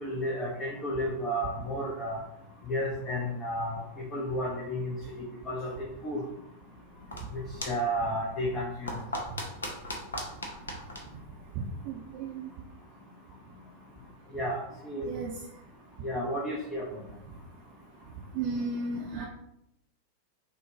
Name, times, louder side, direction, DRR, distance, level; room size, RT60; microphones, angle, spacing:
voice 1, 0.0-2.2 2.7-3.8 4.1-4.9 5.5-6.2 7.3-8.9 14.3-14.6 14.8-15.0 16.0-16.9, equal, 20° left, -3 dB, 0.8 m, -32 dB
sound 1, 6.7-12.1, left 1 dB, 70° left, 0.8 m, -40 dB
voice 2, 11.8-12.5 15.0-15.3 18.3-19.3, right 3 dB, 40° right, -2 dB, 0.6 m, -34 dB
6.4 x 2.3 x 2.6 m, 0.81 s
figure-of-eight pair, 90°, 0 cm